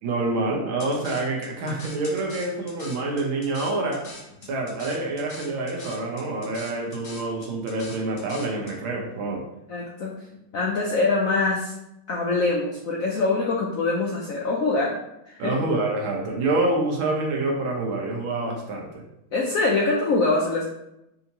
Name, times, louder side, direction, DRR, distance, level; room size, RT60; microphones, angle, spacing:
voice 1, 0.0-4.1 4.4-9.4 15.4-18.9, right 2 dB, 90° right, 0 dB, 1.7 m, -27 dB
sound 1, 0.8-8.8, left 2 dB, 55° left, 1.1 m, -43 dB
voice 2, 9.7-11.7 12.1-15.0 15.3-15.5 19.3-20.6, left 3 dB, 80° left, -2 dB, 0.7 m, -24 dB
5.5 x 2.8 x 2.8 m, 0.86 s
omnidirectional pair, 2.1 m